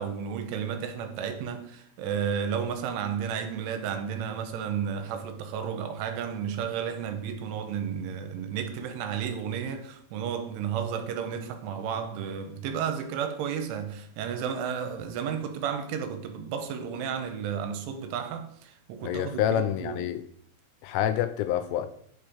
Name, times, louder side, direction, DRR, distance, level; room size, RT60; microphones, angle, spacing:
voice 1, 0.0-20.0, right 7 dB, 80° right, 3.2 m, -32 dB
voice 2, 19.0-20.2 20.8-21.9, left 10 dB, 85° left, 2.9 m, -27 dB
11.0 x 4.3 x 5.0 m
omnidirectional pair, 5.8 m